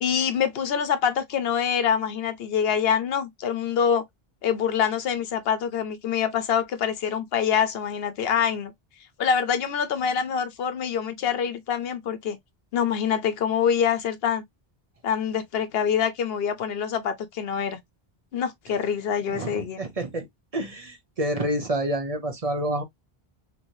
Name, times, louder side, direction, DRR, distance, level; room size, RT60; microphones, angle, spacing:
voice 1, 0.0-4.0 4.4-8.7 9.2-12.4 12.7-14.4 15.0-17.8 18.3-19.8, left 7 dB, 75° left, 0.9 m, -25 dB
voice 2, 19.3-20.3 20.5-22.8, right 1 dB, 40° right, 0.8 m, -28 dB
3.1 x 2.9 x 2.6 m
omnidirectional pair, 1.0 m